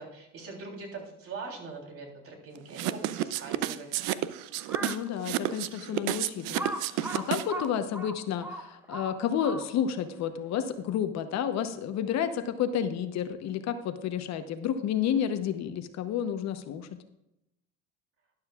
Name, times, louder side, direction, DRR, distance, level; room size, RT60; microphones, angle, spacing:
voice 1, 0.0-3.9, right 3 dB, 45° right, 1 dB, 3.5 m, -42 dB
sound 1, 2.7-7.7, right 14 dB, 70° right, 0.7 m, -30 dB
Crow, 4.6-5.1 5.7-5.8 6.5-10.0, right 1 dB, 5° right, 0.8 m, -38 dB
voice 2, 4.8-16.9, left 9 dB, 55° left, 9 dB, 1.0 m, -31 dB
12.5 x 11.5 x 2.4 m, 0.87 s
cardioid pair, 120°, 33 cm